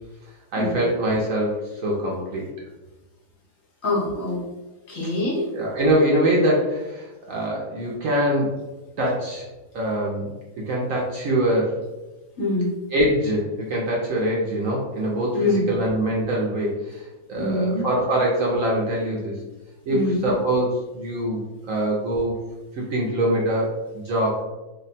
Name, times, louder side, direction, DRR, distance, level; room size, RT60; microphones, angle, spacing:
voice 1, 0.5-2.5 5.5-8.5 9.0-9.4 9.7-10.3 10.7-11.8 12.9-19.3 19.9-22.4 22.7-24.4, right 1 dB, 65° right, -3 dB, 0.9 m, -23 dB
voice 2, 3.8-4.4 4.9-5.5 12.4-12.7 15.3-15.6 17.4-17.8 19.9-20.3, left 2 dB, 60° left, -3 dB, 1.1 m, -24 dB
2.8 x 2.2 x 4.0 m, 1.1 s
omnidirectional pair, 1.8 m